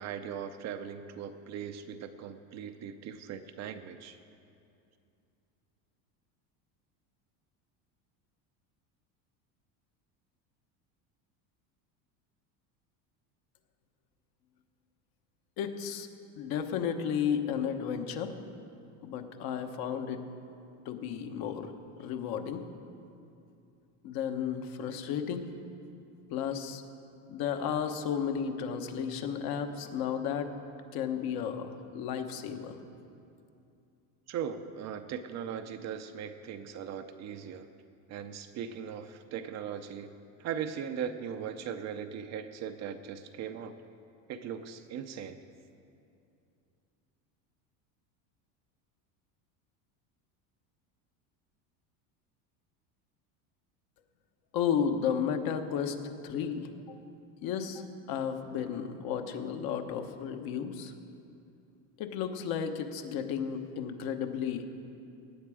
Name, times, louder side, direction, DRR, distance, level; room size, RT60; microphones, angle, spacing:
voice 1, 0.0-4.2 34.3-37.7 38.1-40.1 40.4-43.7 44.3-45.4, right 8 dB, 40° right, 9 dB, 0.6 m, -39 dB
voice 2, 15.6-16.1 16.4-18.4 19.0-20.2 20.8-21.7 22.0-22.6 24.0-25.5 26.3-26.8 27.3-30.5 30.9-32.8 54.5-56.0 56.2-57.0 57.4-60.9 62.0-64.6, left 7 dB, 55° left, 6 dB, 1.1 m, -33 dB
18.0 x 8.7 x 4.9 m, 2.6 s
cardioid pair, 135°, 43 cm